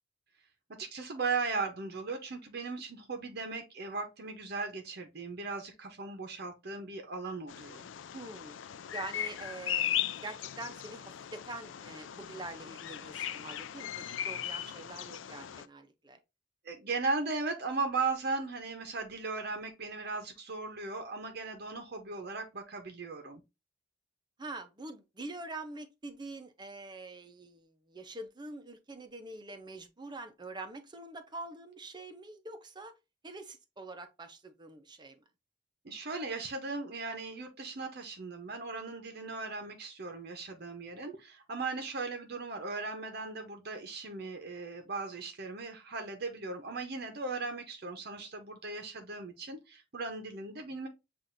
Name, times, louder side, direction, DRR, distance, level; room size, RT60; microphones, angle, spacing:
voice 1, 0.8-7.9 16.6-23.4 35.8-50.9, right 3 dB, 55° right, 0.8 m, -37 dB
Bird vocalization bird call bird song, 7.5-15.7, left 10 dB, 90° left, 0.4 m, -38 dB
voice 2, 8.1-8.6 8.9-16.2 24.4-32.9 33.2-35.2, right 2 dB, 25° right, 0.7 m, -45 dB
7.3 x 2.5 x 2.6 m
head